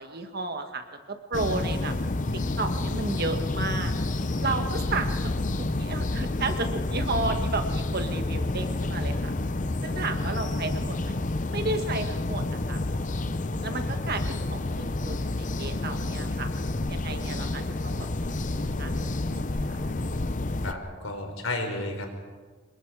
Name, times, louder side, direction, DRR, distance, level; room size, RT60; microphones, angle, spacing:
voice 1, 0.0-1.9 2.6-3.9 4.4-5.2 5.6-9.3 9.8-11.2 11.5-12.8 13.6-16.5 16.9-18.3 18.8-18.9 19.5-19.6, right 3 dB, 45° right, 6 dB, 1.7 m, -33 dB
sound 1, 1.3-20.7, left 2 dB, 35° left, 0.7 m, -29 dB
voice 2, 20.6-22.1, left 2 dB, 75° left, 4 dB, 4.0 m, -32 dB
26.5 x 22.5 x 4.9 m, 1.4 s
head